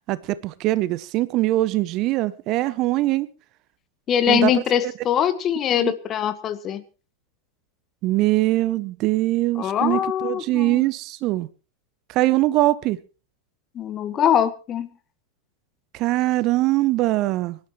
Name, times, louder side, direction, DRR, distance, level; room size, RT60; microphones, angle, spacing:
voice 1, 0.1-3.3 4.3-4.5 4.8-4.9 5.8-5.9 8.0-11.5 12.1-13.0 15.9-17.6, right 17 dB, 40° right, 0.7 m, -22 dB
voice 2, 4.1-6.8 9.6-10.8 13.7-14.9, left 9 dB, 30° left, 1.3 m, -22 dB
24.5 x 12.0 x 3.1 m
figure-of-eight pair, 90°, 0 cm